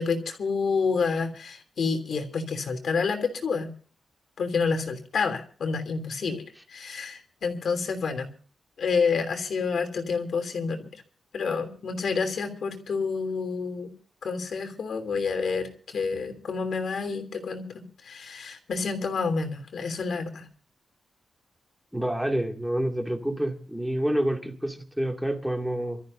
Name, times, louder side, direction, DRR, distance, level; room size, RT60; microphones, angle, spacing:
voice 1, 0.0-3.7 4.4-6.4 6.7-8.3 8.8-10.9 11.3-13.9 14.2-20.5, left 5 dB, 65° left, 6 dB, 3.1 m, -29 dB
voice 2, 21.9-26.0, right 1 dB, ahead, 3 dB, 2.4 m, -28 dB
28.0 x 13.5 x 2.7 m, 0.41 s
wide cardioid pair, 120°, 0 cm